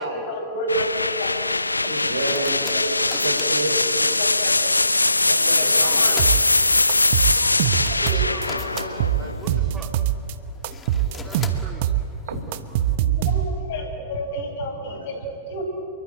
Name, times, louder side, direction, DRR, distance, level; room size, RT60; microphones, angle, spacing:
voice 1, 0.0-1.4 1.9-2.9 4.2-4.6 5.6-5.7 6.0-6.1 7.9-8.2 13.0-15.6, equal, 55° left, 4 dB, 6.0 m, -31 dB
sound 1, 0.7-10.4, left 2 dB, 80° left, 0.6 m, -21 dB
sound 2, 1.8-13.0, left 5 dB, 20° left, 2.3 m, -42 dB
voice 2, 1.8-2.6 3.2-4.1 5.3-6.2 10.9-11.3 11.5-11.6 12.2-12.8 14.8-15.1, right 2 dB, 75° right, 5 dB, 4.4 m, -31 dB
voice 3, 5.4-6.4 7.3-9.9 11.2-11.9, right 3 dB, 15° right, 3 dB, 3.6 m, -41 dB
sound 3, 6.2-6.6 6.9-8.5 8.8-10.3 10.6-13.7, right 11 dB, 50° right, 1.2 m, -23 dB
27.5 x 23.5 x 9.0 m, 2.6 s
figure-of-eight pair, 90°, 0 cm